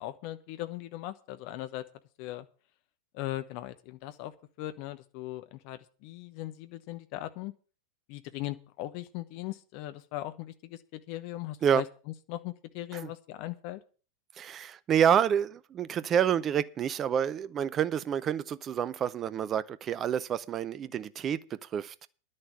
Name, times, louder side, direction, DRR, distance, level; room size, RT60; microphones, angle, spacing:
voice 1, 0.0-1.8 2.2-2.5 3.1-4.3 4.6-7.5 8.1-11.8 12.3-13.8, left 15 dB, 45° left, 1.0 m, -39 dB
voice 2, 14.4-21.9, right 8 dB, 25° right, 0.6 m, -28 dB
11.5 x 6.5 x 8.3 m
figure-of-eight pair, 90°, 0 cm